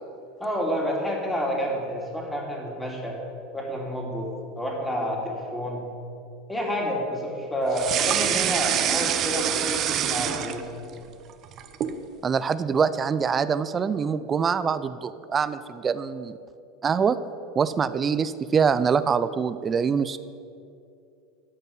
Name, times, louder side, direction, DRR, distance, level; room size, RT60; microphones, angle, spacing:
voice 1, 0.4-3.2 3.5-4.3 4.5-5.8 6.5-10.6, equal, 10° left, -1 dB, 3.0 m, -29 dB
sound 1, 7.7-10.9 11.3-12.0, right 10 dB, 45° right, 0.8 m, -25 dB
voice 2, 12.2-16.4 16.8-17.2 17.6-20.2, right 6 dB, 30° right, 14 dB, 0.4 m, -24 dB
12.0 x 5.4 x 9.0 m, 2.5 s
hypercardioid pair, 85°, 0 cm